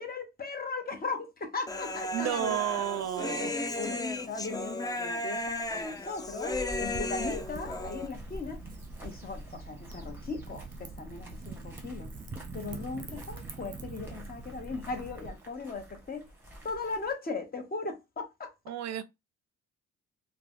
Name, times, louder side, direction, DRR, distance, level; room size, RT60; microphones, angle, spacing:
voice 1, 0.0-2.6 3.4-4.0 4.3-8.6 9.0-12.1 12.5-16.3 16.6-18.5, left 4 dB, 30° left, 0.8 m, -38 dB
Human voice, 1.7-8.1, left 2 dB, 15° left, 0.3 m, -35 dB
voice 2, 2.1-3.5 18.7-19.0, right 11 dB, 60° right, 0.4 m, -31 dB
sound 1, 5.3-17.1, equal, 5° right, 1.1 m, -49 dB
Wind / Fire, 6.7-15.3, right 3 dB, 30° right, 0.7 m, -44 dB
3.2 x 2.1 x 2.4 m
cardioid pair, 90°, 30 cm